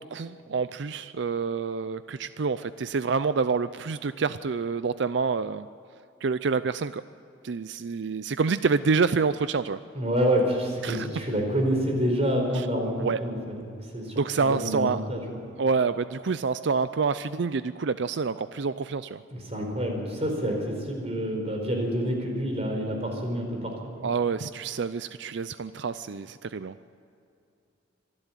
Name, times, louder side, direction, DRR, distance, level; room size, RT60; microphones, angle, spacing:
voice 1, 0.0-5.7 6.2-7.0 7.4-9.8 10.8-11.1 13.0-13.2 14.2-15.0 15.6-19.2 24.0-26.7, right 5 dB, 65° right, 13 dB, 0.5 m, -27 dB
voice 2, 9.9-15.5 19.3-23.7 24.0-24.1, equal, 35° right, 2 dB, 4.5 m, -28 dB
25.5 x 12.0 x 9.1 m, 2.7 s
head